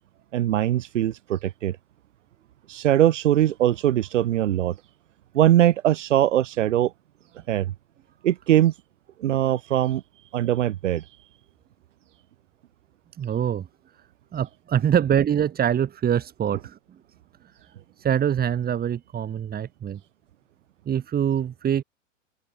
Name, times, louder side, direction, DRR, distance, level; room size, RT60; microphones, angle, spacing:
voice 1, 0.3-1.8 2.7-4.7 5.3-6.9 7.5-7.7 8.2-8.7 9.2-10.0 10.3-11.0, right 12 dB, 65° right, 6.6 m, -21 dB
voice 2, 13.2-13.7 14.3-16.8 18.0-20.0 20.9-21.8, right 9 dB, 25° right, 5.5 m, -24 dB
open air
hypercardioid pair, 115°, 39 cm